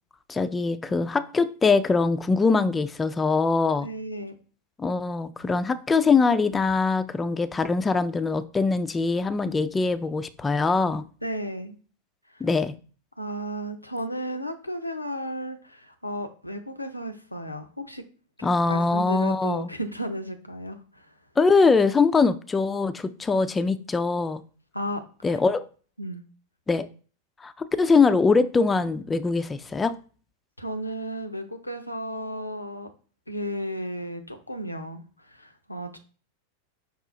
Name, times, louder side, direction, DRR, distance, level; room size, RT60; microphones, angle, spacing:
voice 1, 0.3-3.9 4.8-11.0 12.4-12.7 18.4-19.7 21.4-24.4 25.2-25.7 26.7-26.9 27.4-30.0, left 4 dB, 15° left, 12 dB, 0.3 m, -22 dB
voice 2, 3.8-4.4 11.2-11.8 12.3-12.5 13.2-18.0 18.4-21.1 24.7-25.4 26.0-26.2 30.6-32.9 33.3-36.0, equal, 85° left, 7 dB, 0.5 m, -34 dB
5.6 x 2.4 x 3.7 m, 0.39 s
figure-of-eight pair, 90°, 0 cm